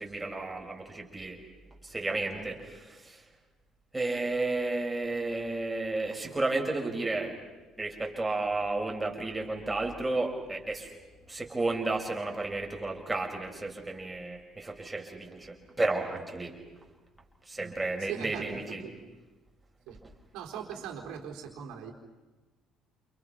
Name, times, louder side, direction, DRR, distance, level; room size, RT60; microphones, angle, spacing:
voice 1, 0.0-1.4 1.8-3.2 3.9-7.4 7.8-10.9 11.3-16.5 17.5-18.8, right 2 dB, 15° right, 1 dB, 5.9 m, -32 dB
voice 2, 18.0-19.0 19.9-20.0 20.3-21.9, right 8 dB, 60° right, 2 dB, 4.2 m, -41 dB
30.0 x 29.0 x 5.9 m, 1.2 s
figure-of-eight pair, 50°, 0 cm